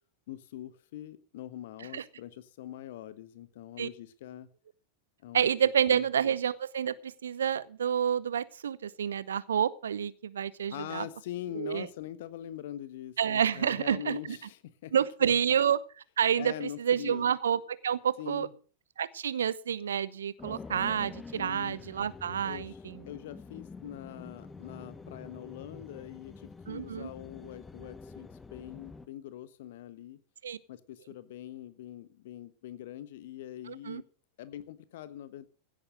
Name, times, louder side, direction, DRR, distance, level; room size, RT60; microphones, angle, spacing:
voice 1, 0.3-4.5 5.2-6.1 10.7-14.9 15.2-15.4 16.3-17.3 18.2-18.5 21.3-21.8 22.4-22.8 23.1-30.2 30.7-34.0 34.4-35.5, left 12 dB, 55° left, 1.3 m, -43 dB
voice 2, 5.3-11.1 11.5-11.9 13.2-14.4 14.9-15.8 16.2-18.5 19.0-23.0 26.7-27.1 30.4-30.6 33.7-34.0, right 8 dB, 65° right, 0.8 m, -29 dB
sound 1, 20.4-29.1, left 4 dB, 15° left, 1.3 m, -47 dB
16.5 x 9.3 x 6.5 m
figure-of-eight pair, 90°, 0 cm